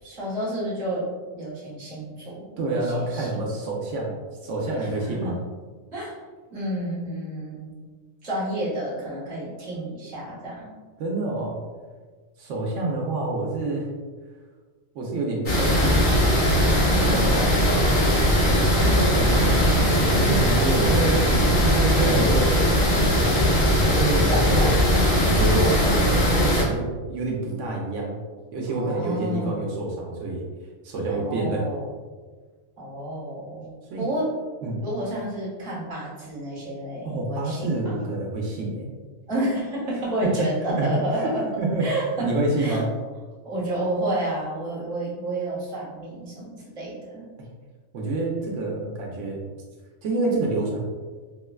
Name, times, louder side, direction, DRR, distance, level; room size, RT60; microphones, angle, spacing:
voice 1, 0.0-3.5 4.8-5.4 5.9-6.2 6.5-7.8 8.2-10.8 16.9-19.7 24.3-25.3 28.7-29.6 31.1-31.9 32.8-34.3 34.8-38.0 39.3-41.5 41.8-42.8 43.4-47.3, right 1 dB, 40° right, -6 dB, 1.1 m, -31 dB
voice 2, 2.6-4.2 4.4-5.4 11.0-11.6 12.4-13.9 14.9-16.0 17.0-17.3 18.8-19.5 20.2-22.6 23.8-24.7 25.2-28.2 28.5-30.4 30.8-31.6 33.9-34.1 34.6-34.8 37.0-38.9 40.2-40.5 40.8-41.3 41.6-41.9 42.2-42.9 47.9-49.4 50.0-50.8, right 2 dB, 85° right, -2 dB, 0.9 m, -27 dB
sound 1, 15.5-26.6, equal, 50° left, 0.8 m, -19 dB
4.0 x 2.1 x 2.2 m, 1.5 s
omnidirectional pair, 1.2 m